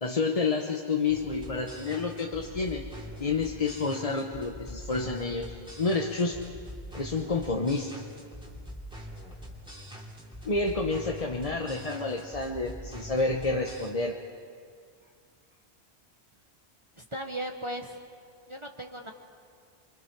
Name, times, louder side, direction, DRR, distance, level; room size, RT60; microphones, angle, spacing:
voice 1, 0.0-2.9 3.2-6.4 6.9-7.9 10.4-14.2, left 3 dB, 35° left, 1 dB, 1.1 m, -29 dB
sound 1, 1.1-13.9, equal, 5° right, 2.7 m, -44 dB
voice 2, 17.0-18.0 18.5-19.1, right 1 dB, 30° right, 3 dB, 1.2 m, -37 dB
29.5 x 24.0 x 4.7 m, 2.1 s
omnidirectional pair, 1.1 m